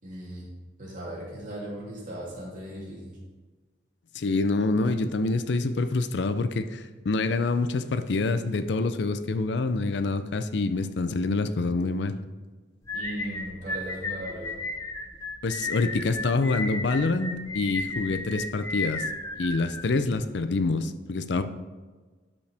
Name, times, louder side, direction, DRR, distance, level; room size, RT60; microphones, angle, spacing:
voice 1, 0.0-0.5 0.8-3.2 12.9-14.6, right 1 dB, 45° right, -6 dB, 2.8 m, -37 dB
voice 2, 4.1-12.2 15.4-19.0 19.4-21.4, left 3 dB, 65° left, 10 dB, 0.5 m, -26 dB
sound 1, 12.9-20.2, left 2 dB, 15° left, 0.6 m, -34 dB
11.5 x 5.2 x 3.4 m, 1.3 s
head